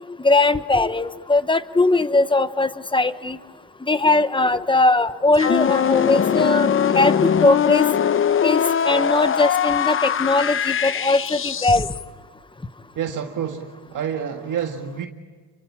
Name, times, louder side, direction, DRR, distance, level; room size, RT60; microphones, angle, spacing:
voice 1, 0.2-3.4 3.9-6.7 6.9-7.9 8.4-11.9, left 2 dB, 10° left, 13 dB, 1.0 m, -19 dB
sound 1, 5.3-12.0, left 8 dB, 30° left, 0.8 m, -21 dB
voice 2, 13.0-15.1, right 8 dB, 50° right, 3 dB, 1.9 m, -28 dB
29.5 x 23.5 x 8.6 m, 1.5 s
cardioid pair, 100°, 40 cm